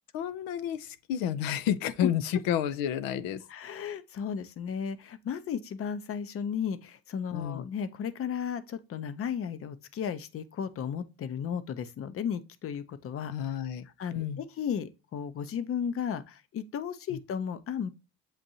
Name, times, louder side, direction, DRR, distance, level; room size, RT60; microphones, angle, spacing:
voice 1, 0.1-3.4 7.3-7.7 13.3-13.8 14.1-14.4 17.1-17.2, left 10 dB, 85° left, 0.6 m, -30 dB
voice 2, 3.5-13.3 14.0-17.9, left 7 dB, 40° left, 0.6 m, -34 dB
7.4 x 2.6 x 2.7 m
cardioid pair, 95°, 34 cm